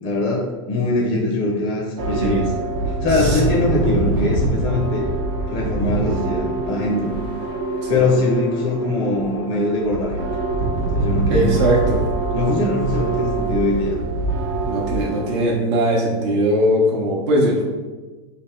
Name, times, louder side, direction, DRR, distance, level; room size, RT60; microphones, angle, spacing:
voice 1, 0.0-2.5 2.8-5.1 5.5-7.1 7.9-10.3 10.9-11.5 12.3-14.0, left 2 dB, 35° left, -1 dB, 0.5 m, -22 dB
sound 1, 2.0-15.4, right 2 dB, 30° right, 0.5 m, -24 dB
voice 2, 3.1-3.4 7.0-7.1 7.8-8.1 11.3-12.0 14.7-17.6, equal, 55° right, -3 dB, 0.7 m, -20 dB
3.3 x 2.1 x 4.2 m, 1.3 s
supercardioid pair, 155°, 17 cm